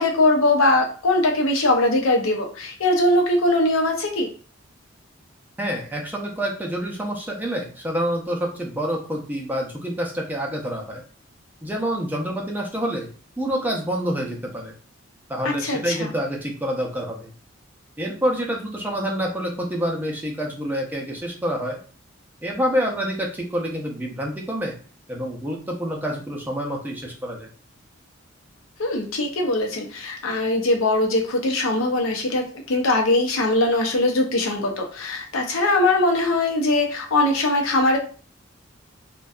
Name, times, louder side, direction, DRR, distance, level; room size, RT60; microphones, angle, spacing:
voice 1, 0.0-4.3 15.4-16.1 28.8-38.0, left 2 dB, 85° left, 2 dB, 0.6 m, -21 dB
voice 2, 5.6-11.0 11.6-13.1 13.4-14.7 15.3-17.3 18.0-21.8 22.4-24.7 25.1-27.5, equal, 10° right, -1 dB, 0.4 m, -27 dB
2.6 x 2.2 x 2.3 m, 0.39 s
head